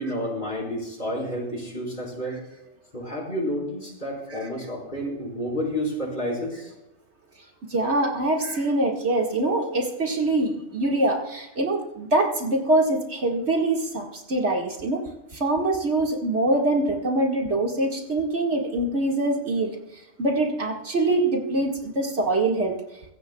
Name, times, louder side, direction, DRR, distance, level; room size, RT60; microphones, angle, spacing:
voice 1, 0.0-2.4 2.9-6.7, equal, 40° left, -1 dB, 5.0 m, -30 dB
voice 2, 7.7-15.0 15.3-19.8 20.2-22.8, right 2 dB, 65° right, 0 dB, 2.2 m, -24 dB
23.5 x 16.0 x 2.3 m, 0.92 s
omnidirectional pair, 1.3 m